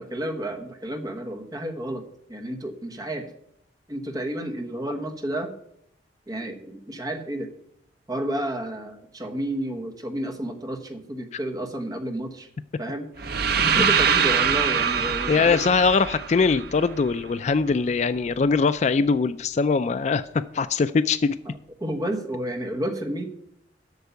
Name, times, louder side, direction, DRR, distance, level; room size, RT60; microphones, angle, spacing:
voice 1, 0.0-2.0 2.3-3.3 3.9-5.5 6.3-7.5 8.1-12.5 12.8-13.1 13.5-15.6 21.8-23.3, right 1 dB, 20° right, 5 dB, 1.2 m, -31 dB
sound 1, 13.2-17.2, right 6 dB, 55° right, 0.7 m, -23 dB
voice 2, 15.3-21.4, left 4 dB, 40° left, 13 dB, 0.3 m, -22 dB
8.1 x 6.7 x 8.2 m, 0.74 s
head